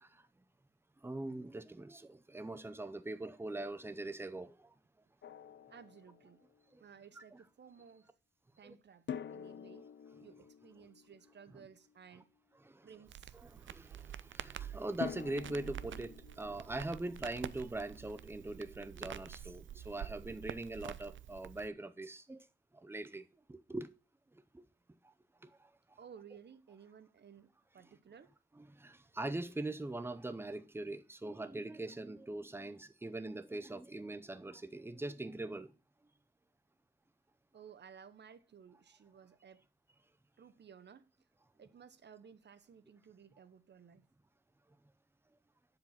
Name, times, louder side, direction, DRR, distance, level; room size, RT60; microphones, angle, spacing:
voice 1, 1.0-4.7 6.7-6.8 7.2-7.4 8.6-8.7 12.6-12.9 13.4-22.5 22.7-23.9 24.3-24.6 25.4-25.7 28.6-35.7, right 2 dB, 10° right, 0.6 m, -42 dB
Drum, 5.2-6.6 9.1-12.1 15.0-17.9, left 8 dB, 70° left, 0.5 m, -48 dB
voice 2, 5.7-6.5 6.8-8.1 8.6-9.9 10.2-12.3 12.8-13.4 26.0-28.3 37.5-39.7 40.4-41.1 41.6-44.1, right 7 dB, 65° right, 0.8 m, -57 dB
Crackle, 13.1-21.7, right 10 dB, 85° right, 0.5 m, -48 dB
11.0 x 5.0 x 5.6 m
wide cardioid pair, 145°, 19 cm